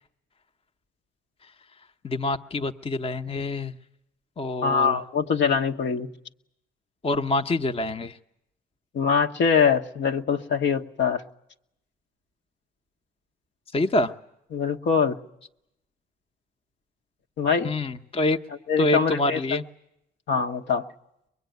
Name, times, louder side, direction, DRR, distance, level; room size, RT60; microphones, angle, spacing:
voice 1, 2.0-3.7 4.4-5.0 7.0-8.2 13.7-14.1 17.6-18.4 18.8-19.6, left 2 dB, 30° left, 8 dB, 1.0 m, -26 dB
voice 2, 4.6-6.1 8.9-11.2 14.5-15.2 17.4-17.7 18.7-19.4 20.3-20.9, left 6 dB, 65° left, 4 dB, 1.4 m, -23 dB
23.0 x 21.5 x 9.4 m, 0.81 s
cardioid pair, 90°, 20 cm